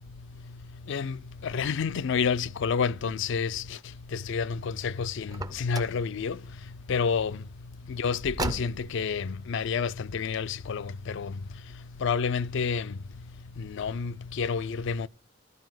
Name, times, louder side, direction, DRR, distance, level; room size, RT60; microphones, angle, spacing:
voice 1, 1.4-3.6 4.3-6.4 6.9-7.4 8.0-10.9 11.1-11.3 12.0-12.8 13.8-15.1, left 6 dB, 60° left, 0.4 m, -29 dB
Car, 5.3-6.1 8.2-9.1, right 2 dB, 20° right, 0.4 m, -34 dB
12.5 x 4.9 x 7.6 m
head